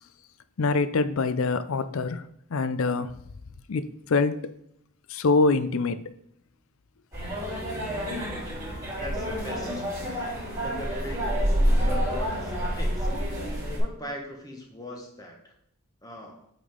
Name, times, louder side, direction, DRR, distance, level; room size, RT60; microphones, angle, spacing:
voice 1, 0.6-2.3 2.5-3.1 3.7-4.4 5.1-6.0, left 4 dB, 65° left, 0.5 m, -24 dB
Outdoor cafe in university, 7.1-13.8, equal, 15° right, 3.0 m, -28 dB
voice 2, 9.0-9.9 10.6-13.1 13.8-15.5 16.0-16.5, left 1 dB, 15° left, 1.4 m, -40 dB
8.4 x 5.3 x 3.7 m
head